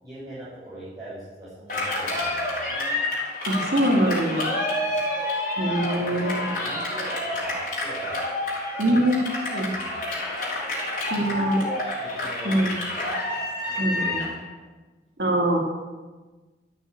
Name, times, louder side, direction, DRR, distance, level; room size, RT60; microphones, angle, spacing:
voice 1, 0.0-3.0 5.9-8.5 9.5-10.0 11.2-12.7 13.6-14.5, right 1 dB, 20° right, -12 dB, 5.9 m, -41 dB
Cheering, 1.7-14.3, left 1 dB, 50° left, 6.0 m, -29 dB
voice 2, 3.4-4.5 5.6-6.5 8.8-9.7 11.1-11.6 12.4-12.7 13.8-14.2 15.2-15.6, right 1 dB, 65° right, 0 dB, 2.6 m, -23 dB
14.0 x 9.0 x 9.0 m, 1.3 s
head